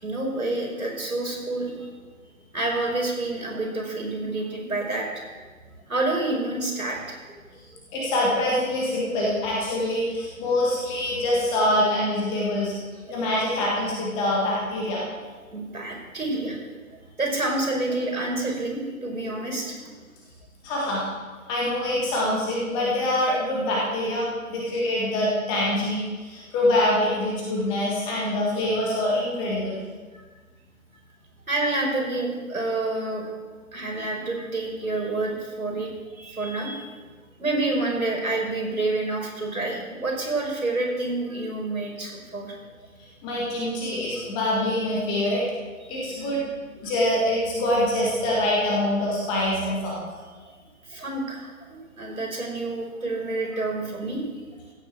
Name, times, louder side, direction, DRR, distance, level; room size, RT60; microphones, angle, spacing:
voice 1, 0.0-1.9 2.5-5.3 5.9-7.2 7.7-7.8 13.0-13.2 15.5-16.7 17.2-19.8 31.5-33.3 33.7-36.9 37.4-42.5 45.8-46.1 50.4-50.6 50.8-54.5, right 2 dB, 75° right, 0 dB, 5.2 m, -28 dB
voice 2, 7.9-12.7 13.1-15.0 20.6-21.0 21.5-29.8 43.2-45.4 45.9-46.4 46.8-50.0, left 1 dB, 10° left, -4 dB, 1.7 m, -25 dB
15.5 x 7.7 x 7.6 m, 1.4 s
figure-of-eight pair, 150°, 42 cm